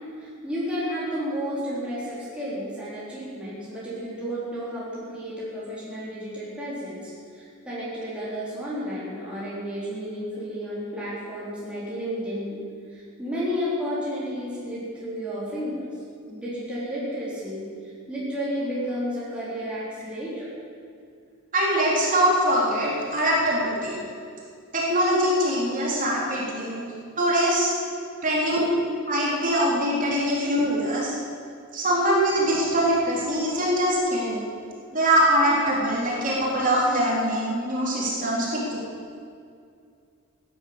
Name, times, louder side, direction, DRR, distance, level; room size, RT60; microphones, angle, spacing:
voice 1, 0.2-12.6 12.9-15.9 16.3-17.7 18.1-20.5, equal, 5° right, -9 dB, 4.2 m, -32 dB
voice 2, 21.5-24.0 24.7-26.8 27.2-27.7 28.2-28.7 29.1-31.2 31.7-34.4 34.9-38.8, equal, 35° right, -4 dB, 3.7 m, -23 dB
16.0 x 10.5 x 8.1 m, 2.3 s
head